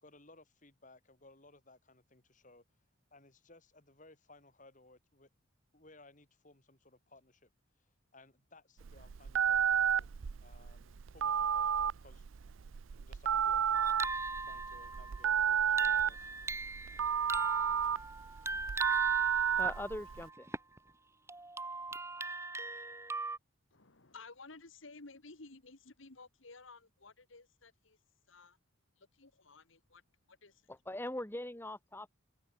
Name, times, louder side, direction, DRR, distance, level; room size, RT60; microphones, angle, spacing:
voice 1, 0.0-2.6 3.1-5.3 5.7-7.5 8.1-10.1 10.4-12.3 13.0-14.0 14.4-16.3, left 2 dB, 40° left, 4.0 m, -61 dB
Telephone, 8.8-20.2, right 8 dB, 75° right, 0.5 m, -31 dB
sound 1, 13.7-20.8 21.3-23.4, right 3 dB, 15° right, 1.2 m, -40 dB
voice 2, 19.6-20.5 30.7-32.1, left 1 dB, 10° left, 1.2 m, -41 dB
voice 3, 23.7-28.0 28.3-28.6 29.0-30.0 30.3-30.6, left 3 dB, 70° left, 1.9 m, -55 dB
head